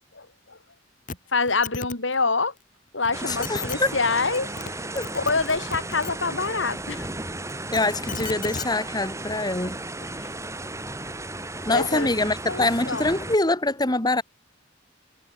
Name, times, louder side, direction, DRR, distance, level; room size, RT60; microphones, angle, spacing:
voice 1, 0.1-0.6 1.3-2.5 2.9-7.1 10.2-10.3 11.7-12.1 12.5-13.1, left 4 dB, 80° left, 3.7 m, -26 dB
sound 1, 1.1-1.2 1.4-1.9 3.0-3.1 3.4-3.8 4.4-4.7 5.0-6.1 7.5-8.7 9.7-9.8, left 4 dB, 45° left, 2.7 m, -34 dB
sound 2, 3.1-13.4, right 2 dB, 15° right, 8.0 m, -35 dB
voice 2, 3.2-3.9 4.9-5.1 7.7-9.8 11.7-14.2, left 2 dB, 20° left, 2.4 m, -24 dB
head